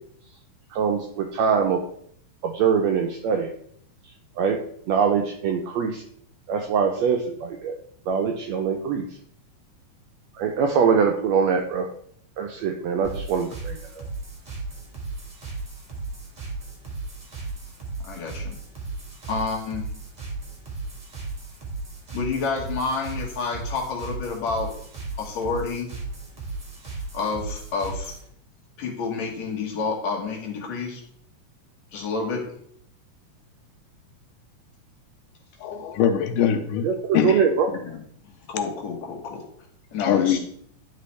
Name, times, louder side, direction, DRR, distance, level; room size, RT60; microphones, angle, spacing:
voice 1, 0.7-1.8 2.4-3.5 4.4-4.6 4.9-6.0 6.5-7.8 8.1-9.0 10.3-11.9 12.4-14.0 36.8-37.7, right 6 dB, 85° right, 1.5 m, -23 dB
sound 1, 13.0-28.3, right 3 dB, 25° right, 0.9 m, -36 dB
voice 2, 18.0-18.5 19.3-19.8 22.1-24.7 25.2-25.9 27.1-28.1 28.8-31.0 31.9-32.4 37.7-38.0 38.5-39.4 39.9-40.4, left 4 dB, 65° left, 2.5 m, -29 dB
voice 3, 35.6-36.9 37.1-37.4 40.0-40.4, left 9 dB, 80° left, 2.2 m, -22 dB
11.0 x 4.1 x 3.2 m
omnidirectional pair, 3.7 m